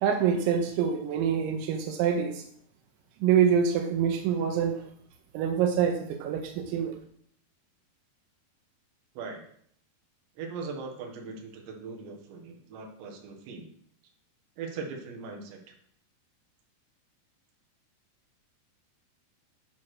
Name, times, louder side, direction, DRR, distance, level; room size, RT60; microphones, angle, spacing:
voice 1, 0.0-2.4 3.2-4.8 5.3-7.0, right 7 dB, 90° right, 4 dB, 3.2 m, -26 dB
voice 2, 10.4-13.7 14.6-15.7, right 4 dB, 75° right, 1 dB, 3.6 m, -40 dB
9.8 x 4.9 x 6.1 m, 0.65 s
omnidirectional pair, 5.1 m